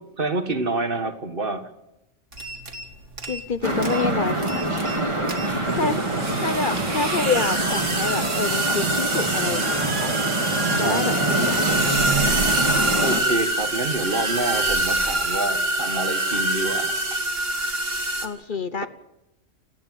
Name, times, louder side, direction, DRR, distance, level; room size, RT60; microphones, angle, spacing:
voice 1, 0.0-1.7 5.4-5.9 6.4-6.5 10.8-11.5 12.7-17.2, right 2 dB, 45° right, 8 dB, 1.9 m, -28 dB
sound 1, 2.3-2.9 3.1-3.6 3.8-4.0 4.4-5.0 5.3-18.3, right 1 dB, 75° right, 3.0 m, -25 dB
voice 2, 3.3-5.1 5.7-10.1 10.8-11.8 18.2-18.9, left 4 dB, 45° left, 12 dB, 1.0 m, -28 dB
sound 2, 3.6-13.2, right 2 dB, 25° right, 2.4 m, -25 dB
30.0 x 10.0 x 9.2 m, 0.89 s
omnidirectional pair, 1.3 m